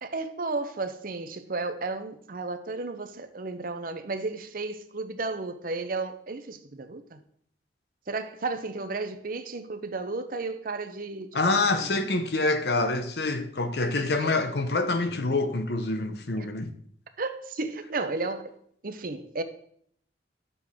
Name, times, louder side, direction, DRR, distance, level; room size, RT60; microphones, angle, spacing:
voice 1, 0.0-7.2 8.1-12.0 14.2-14.4 16.4-16.5 17.2-18.6 18.8-19.4, right 3 dB, 55° right, 0.7 m, -33 dB
voice 2, 11.3-16.7, left 2 dB, 65° left, 0.8 m, -26 dB
10.5 x 6.9 x 3.6 m
head